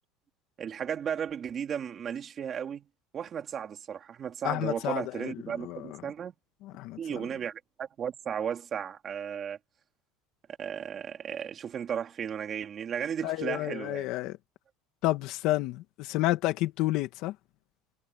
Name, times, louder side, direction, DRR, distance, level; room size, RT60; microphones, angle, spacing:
voice 1, 0.6-2.9 3.1-6.3 7.0-9.6 10.6-14.1, right 8 dB, 25° right, 3.0 m, -35 dB
voice 2, 4.4-5.3 5.6-6.0 6.6-7.2 13.2-14.4 15.0-17.3, left 17 dB, 55° left, 2.0 m, -30 dB
cardioid pair, 160°, 0 cm